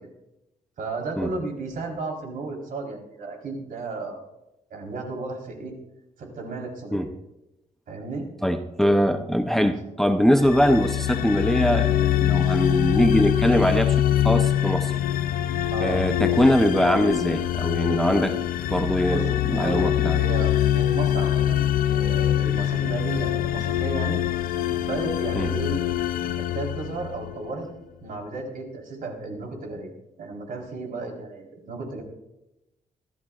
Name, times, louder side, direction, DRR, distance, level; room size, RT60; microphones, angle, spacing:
voice 1, 0.8-4.2 4.7-5.7 6.2-7.1 7.9-8.3 15.7-16.0 19.0-24.2 24.8-25.7 26.4-27.7 28.0-29.9 30.2-32.0, right 3 dB, 65° right, 1 dB, 4.2 m, -34 dB
voice 2, 8.4-14.0 14.2-14.9 15.8-18.4 18.7-20.2 25.3-25.5, equal, ahead, 6 dB, 0.7 m, -22 dB
sound 1, 10.4-27.5, left 11 dB, 70° left, 0.6 m, -24 dB
25.0 x 14.0 x 2.5 m, 0.91 s
cardioid pair, 140°, 15 cm